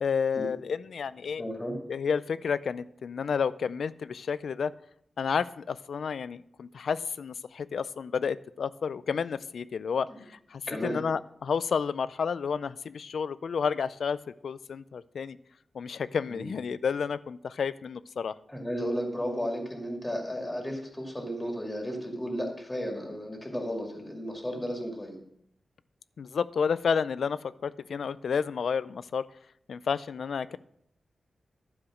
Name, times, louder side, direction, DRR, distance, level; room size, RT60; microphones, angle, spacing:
voice 1, 0.0-1.4 1.9-4.7 5.2-10.1 10.5-14.2 14.4-15.4 15.7-18.3 26.2-29.2 29.7-30.6, left 6 dB, 80° left, 16 dB, 0.4 m, -30 dB
voice 2, 1.4-1.8 10.1-10.2 10.7-11.1 16.3-16.6 18.5-25.2, equal, 15° left, 1 dB, 2.3 m, -34 dB
11.5 x 4.9 x 6.3 m, 0.72 s
wide cardioid pair, 135°, 0 cm